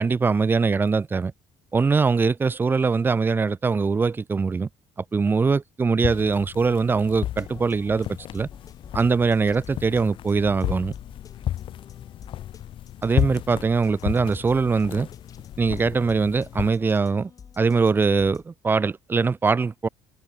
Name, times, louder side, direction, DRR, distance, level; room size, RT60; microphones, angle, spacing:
voice 1, 0.0-1.3 1.7-4.7 5.0-8.1 8.3-8.5 8.9-10.9 13.0-15.1 15.6-17.3 17.6-19.9, right 4 dB, 20° right, 0.5 m, -22 dB
sound 1, 6.0-16.7, left 12 dB, 60° left, 1.4 m, -33 dB
sound 2, 7.1-18.4, left 6 dB, 35° left, 7.0 m, -49 dB
cardioid pair, 120°, 10 cm